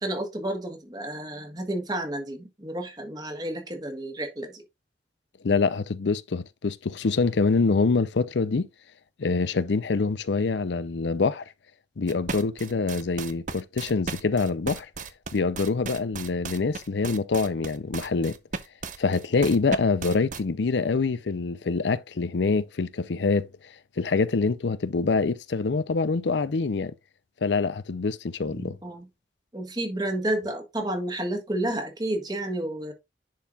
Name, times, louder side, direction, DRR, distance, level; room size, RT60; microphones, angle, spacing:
voice 1, 0.0-4.6 28.4-29.1 29.5-32.9, right 1 dB, 25° right, 1.6 m, -31 dB
voice 2, 5.4-8.7 9.2-11.4 12.0-14.9 15.3-18.4 19.0-23.5 24.0-26.9 27.4-28.8, left 4 dB, 90° left, 0.5 m, -25 dB
sound 1, 12.1-20.4, right 4 dB, 45° right, 0.7 m, -35 dB
10.5 x 4.6 x 2.4 m
head